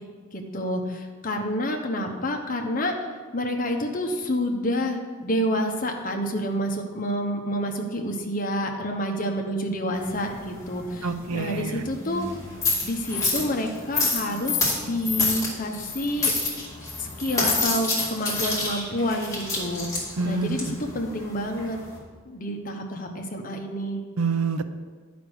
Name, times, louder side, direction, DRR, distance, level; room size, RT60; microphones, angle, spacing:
voice 1, 0.3-12.3 12.8-16.3 17.0-19.9 20.2-21.8 22.2-24.0, equal, 40° left, 3 dB, 1.0 m, -28 dB
sound 1, 9.9-22.0, left 3 dB, 15° left, 2.2 m, -29 dB
voice 2, 11.0-11.8 20.2-20.6 24.2-24.7, right 4 dB, 85° right, 10 dB, 0.6 m, -27 dB
10.5 x 5.2 x 6.4 m, 1.5 s
head